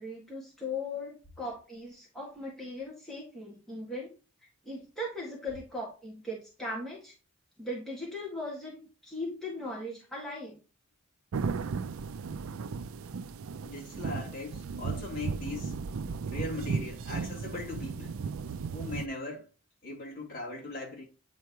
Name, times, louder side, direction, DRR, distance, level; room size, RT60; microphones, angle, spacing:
voice 1, 0.0-4.1 4.6-7.1 7.6-10.6, left 1 dB, ahead, 1.8 m, -38 dB
sound 1, 11.3-19.1, right 5 dB, 85° right, 0.4 m, -35 dB
voice 2, 13.6-15.8 16.3-18.2 18.7-19.5 19.8-21.0, left 2 dB, 40° left, 3.2 m, -39 dB
9.2 x 4.6 x 2.9 m
head